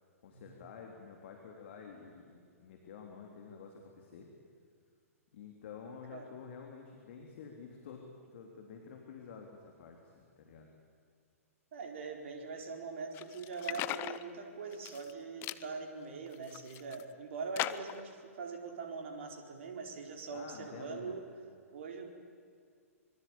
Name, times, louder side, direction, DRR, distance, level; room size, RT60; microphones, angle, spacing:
voice 1, 0.2-4.3 5.3-8.0 8.3-10.7 20.3-21.2, left 6 dB, 50° left, 2 dB, 3.5 m, -50 dB
voice 2, 11.7-21.3 21.7-22.1, right 4 dB, 55° right, 3 dB, 4.7 m, -42 dB
sound 1, 13.1-14.2 14.7-15.1 15.4-15.6 16.3-17.0 17.6-18.0, left 15 dB, 30° left, 0.8 m, -38 dB
25.5 x 24.0 x 8.8 m, 2.2 s
figure-of-eight pair, 115°, 8 cm